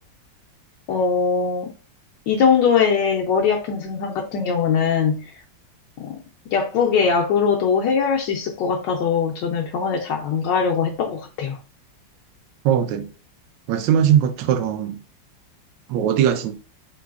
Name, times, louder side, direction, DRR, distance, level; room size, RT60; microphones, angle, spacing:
voice 1, 0.9-1.7 2.3-5.2 6.0-6.2 6.5-11.6, left 6 dB, 75° left, 1.2 m, -21 dB
voice 2, 12.6-13.1 13.7-15.0 15.9-16.5, right 9 dB, 75° right, 1.2 m, -20 dB
3.8 x 2.9 x 2.4 m
omnidirectional pair, 2.0 m